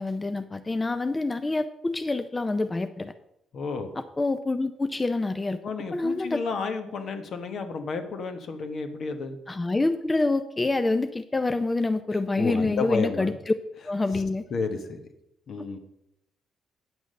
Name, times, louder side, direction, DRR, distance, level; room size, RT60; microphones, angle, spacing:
voice 1, 0.0-3.1 4.2-5.6 5.9-6.4 9.5-13.5 13.9-14.4, left 2 dB, 20° left, 9 dB, 0.5 m, -26 dB
voice 2, 3.5-3.9 5.6-9.4 12.4-13.4 14.1-14.2 14.5-15.0 15.5-15.8, left 4 dB, 60° left, 7 dB, 1.3 m, -31 dB
9.3 x 6.2 x 6.4 m, 0.83 s
cardioid pair, 90°, 0 cm